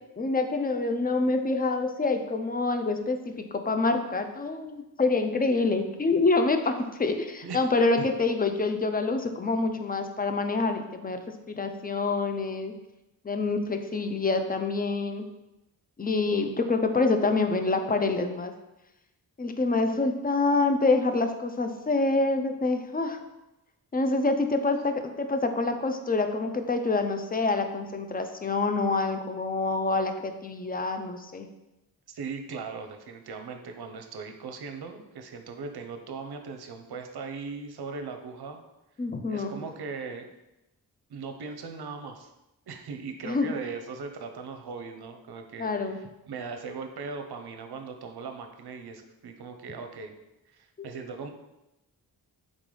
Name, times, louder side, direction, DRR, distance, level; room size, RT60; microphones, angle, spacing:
voice 1, 0.2-11.2 11.5-12.7 13.2-15.2 16.0-18.5 19.4-23.2 23.9-31.5 39.0-39.5 43.2-43.5 45.6-46.0 50.8-50.9, left 3 dB, 20° left, 7 dB, 0.4 m, -26 dB
voice 2, 32.1-38.6 39.3-40.3 41.1-42.3 42.7-50.1 50.5-51.3, right 4 dB, 65° right, 6 dB, 0.6 m, -39 dB
3.9 x 3.8 x 3.2 m, 0.95 s
cardioid pair, 70°, 42 cm